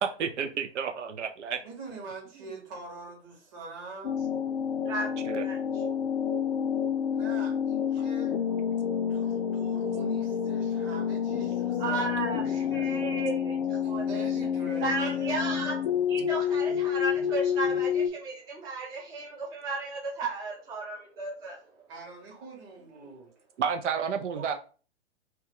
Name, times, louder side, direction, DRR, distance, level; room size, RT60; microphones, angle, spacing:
voice 1, 0.0-1.6 5.3-5.4 8.0-8.1 23.6-24.5, right 7 dB, 80° right, 7 dB, 0.5 m, -31 dB
voice 2, 1.6-4.2 7.0-8.4 8.8-12.9 13.8-15.4 21.9-23.3, right 4 dB, 35° right, 0 dB, 1.4 m, -44 dB
sound 1, 4.0-18.1, left 8 dB, 45° left, 0.4 m, -29 dB
voice 3, 5.4-5.8 11.8-14.2 14.8-15.7 16.1-21.6 24.3-24.5, right 3 dB, 10° right, -3 dB, 0.5 m, -34 dB
2.8 x 2.2 x 3.5 m, 0.38 s
hypercardioid pair, 115°, 35 cm